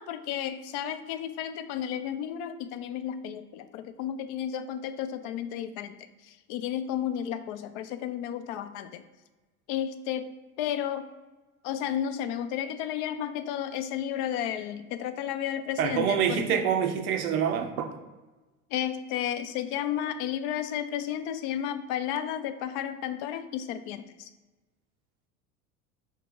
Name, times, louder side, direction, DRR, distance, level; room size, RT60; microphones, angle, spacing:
voice 1, 0.0-9.0 9.7-10.3 10.6-11.1 11.6-16.7 18.7-24.3, left 10 dB, 50° left, 10 dB, 0.5 m, -33 dB
voice 2, 15.8-17.9, right 8 dB, 70° right, 5 dB, 0.7 m, -26 dB
4.6 x 2.9 x 3.7 m, 1.2 s
hypercardioid pair, 75°, 44 cm